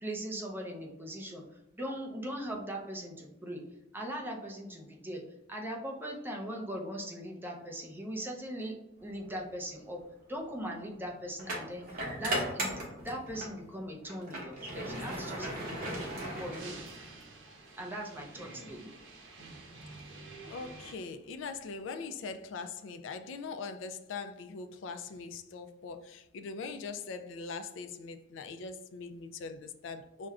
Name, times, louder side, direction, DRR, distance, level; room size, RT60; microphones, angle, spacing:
voice 1, 0.0-1.4 1.7-3.6 3.9-5.2 5.5-8.7 9.0-10.0 10.3-16.7 17.8-18.9, equal, 10° right, 0.6 m, -40 dB
sound 1, 9.3-9.5 11.4-13.6 14.0-17.2, right 1 dB, 50° right, 0.9 m, -37 dB
sound 2, 15.5-20.9, right 2 dB, 80° right, 0.7 m, -49 dB
voice 2, 18.3-18.7 20.0-20.2 20.4-30.3, left 4 dB, 70° left, 0.3 m, -42 dB
6.0 x 2.2 x 2.4 m
head